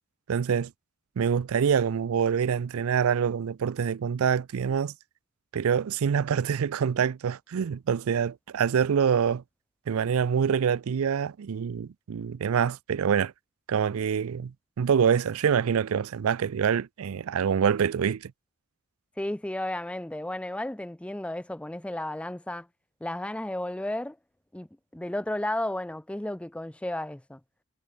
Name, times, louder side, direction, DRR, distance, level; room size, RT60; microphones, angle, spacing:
voice 1, 0.3-0.7 1.2-4.9 5.5-9.4 9.9-13.3 13.7-18.3, right 7 dB, 70° right, 0.4 m, -25 dB
voice 2, 19.2-22.7 23.0-24.2 24.5-27.4, left 1 dB, 5° left, 0.4 m, -33 dB
head